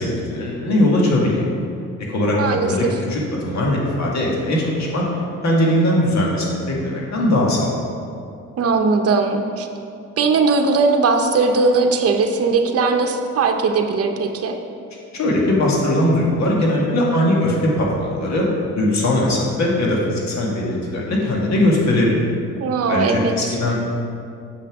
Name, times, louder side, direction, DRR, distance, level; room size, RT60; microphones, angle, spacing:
voice 1, 0.0-1.5 2.1-5.1 5.4-7.7 15.1-18.5 18.8-22.3 22.9-23.8, left 1 dB, 65° left, -3 dB, 1.9 m, -20 dB
voice 2, 2.3-2.9 8.6-9.7 10.2-14.6 22.6-23.5, right 4 dB, 50° right, 4 dB, 0.8 m, -19 dB
7.0 x 5.8 x 4.7 m, 2.5 s
cardioid pair, 90°, 30 cm